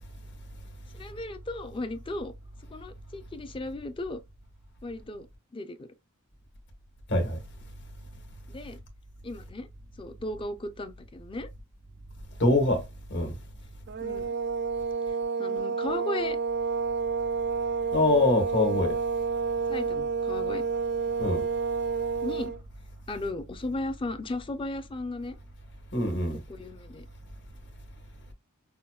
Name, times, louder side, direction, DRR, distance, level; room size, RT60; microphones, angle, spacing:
voice 1, 0.9-2.3 2.7-4.2 4.8-5.3 5.5-5.9 8.5-8.8 9.2-9.7 10.0-11.5 14.0-14.4 15.1-16.4 19.7-20.6 22.2-22.5 23.1-25.3 26.3-27.1, left 2 dB, 25° left, 0.5 m, -36 dB
voice 2, 12.4-12.8 13.1-13.3 17.9-19.0 21.2-21.4 25.9-26.4, left 2 dB, 55° left, 1.2 m, -24 dB
sound 1, 13.9-22.6, right 5 dB, 50° right, 0.4 m, -29 dB
5.5 x 2.3 x 2.3 m
head